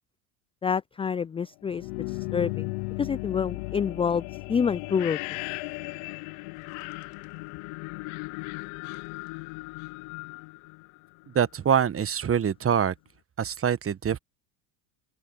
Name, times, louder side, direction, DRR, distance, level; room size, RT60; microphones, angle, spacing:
voice 1, 0.6-2.7 3.0-5.4, left 6 dB, 15° left, 0.3 m, -28 dB
sound 1, 1.6-11.5, left 27 dB, 65° left, 1.0 m, -36 dB
voice 2, 11.3-12.9 13.4-14.2, right 8 dB, 25° right, 1.3 m, -24 dB
open air
supercardioid pair, 90°, 50 cm